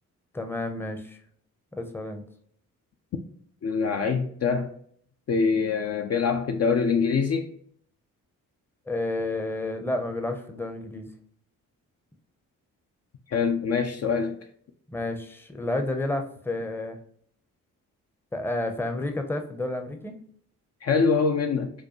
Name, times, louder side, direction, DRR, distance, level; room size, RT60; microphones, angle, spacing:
voice 1, 0.3-1.2 1.7-2.2 8.9-11.1 14.9-17.0 18.3-20.2, left 2 dB, 5° left, 0.6 m, -30 dB
voice 2, 3.6-4.7 5.3-7.5 13.3-14.4 20.8-21.7, left 5 dB, 45° left, 0.5 m, -24 dB
4.8 x 2.2 x 3.0 m
supercardioid pair, 55°, 36 cm